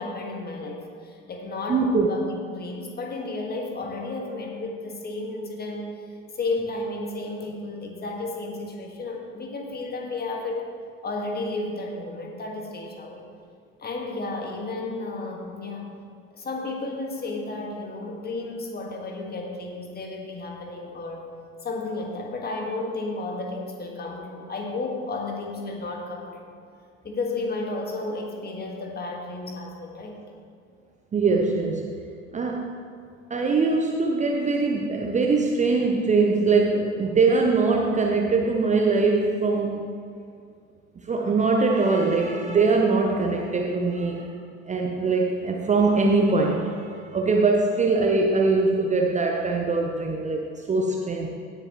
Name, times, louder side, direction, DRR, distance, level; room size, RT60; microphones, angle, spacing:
voice 1, 0.0-5.9 6.3-10.6 11.0-13.3 13.8-16.0 16.3-21.2 21.6-26.5 27.0-30.2, left 2 dB, 25° left, 1 dB, 1.8 m, -32 dB
voice 2, 1.7-2.1 31.1-31.8 32.3-32.7 33.3-39.8 41.1-44.3 44.7-51.3, right 3 dB, 20° right, 1 dB, 0.8 m, -22 dB
17.0 x 6.9 x 3.1 m, 2.3 s
figure-of-eight pair, 70°, 38 cm